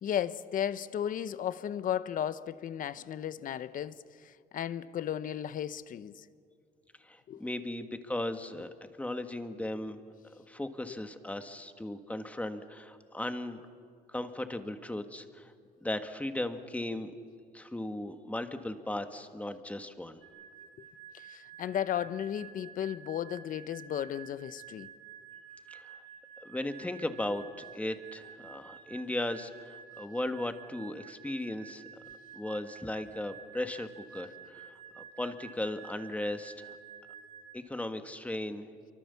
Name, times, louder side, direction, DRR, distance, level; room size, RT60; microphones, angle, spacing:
voice 1, 0.0-6.2 7.3-7.4 21.1-24.9, left 10 dB, 55° left, 0.9 m, -35 dB
voice 2, 7.0-8.7 9.0-10.0 10.4-13.6 14.1-15.5 15.8-17.1 17.5-20.2 25.7-26.0 26.4-31.9 32.3-36.8 37.5-38.7, left 1 dB, 10° left, 1.7 m, -37 dB
sound 1, 20.2-37.5, right 8 dB, 90° right, 7.5 m, -51 dB
28.0 x 24.5 x 7.1 m
cardioid pair, 110°, 17 cm